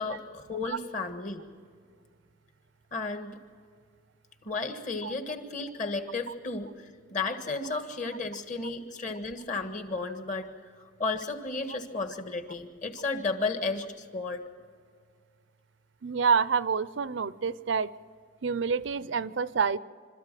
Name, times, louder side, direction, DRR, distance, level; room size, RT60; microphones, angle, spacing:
voice 1, 0.0-1.4 2.9-3.4 4.4-10.5 11.0-14.4, left 3 dB, 40° left, 7 dB, 1.6 m, -33 dB
voice 2, 16.0-17.9 18.4-19.8, right 6 dB, 65° right, 17 dB, 0.5 m, -27 dB
26.0 x 13.5 x 7.6 m, 2.1 s
head